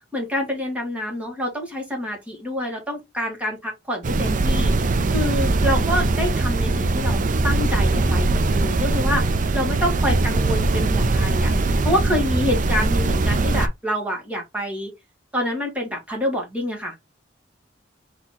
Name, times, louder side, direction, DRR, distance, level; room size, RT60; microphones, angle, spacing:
voice 1, 0.1-4.7 5.1-11.5 11.8-14.9 15.3-17.0, equal, 5° right, 1.9 m, -27 dB
sound 1, 4.0-13.7, right 2 dB, 45° right, 0.5 m, -21 dB
4.2 x 3.0 x 3.9 m
head